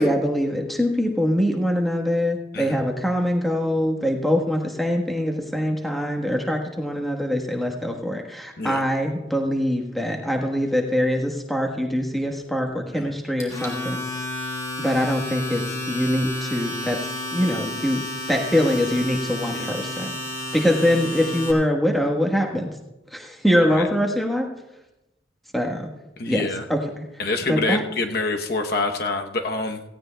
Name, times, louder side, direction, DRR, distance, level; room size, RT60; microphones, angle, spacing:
voice 1, 0.0-14.0 14.8-17.0 17.3-20.2 20.5-22.7 23.1-24.5 25.5-25.9 26.3-27.1 27.5-27.8, equal, ahead, 1 dB, 1.2 m, -23 dB
Domestic sounds home sounds, 13.4-21.5, left 1 dB, 20° left, 2.6 m, -31 dB
voice 2, 26.2-26.6 27.2-29.8, left 3 dB, 55° left, 4 dB, 0.9 m, -26 dB
17.5 x 16.5 x 2.2 m, 0.97 s
head